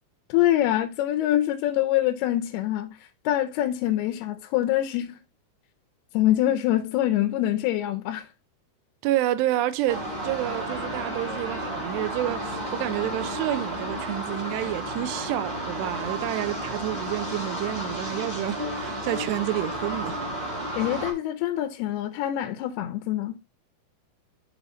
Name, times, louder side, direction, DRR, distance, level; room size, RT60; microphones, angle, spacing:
voice 1, 0.3-3.0 3.3-5.2 6.1-8.3 20.8-23.4, left 13 dB, 80° left, 2.5 m, -25 dB
voice 2, 9.0-20.3, right 14 dB, 85° right, 2.6 m, -29 dB
sound 1, 9.9-21.1, right 1 dB, 15° right, 1.6 m, -32 dB
7.0 x 4.1 x 4.2 m
omnidirectional pair, 4.9 m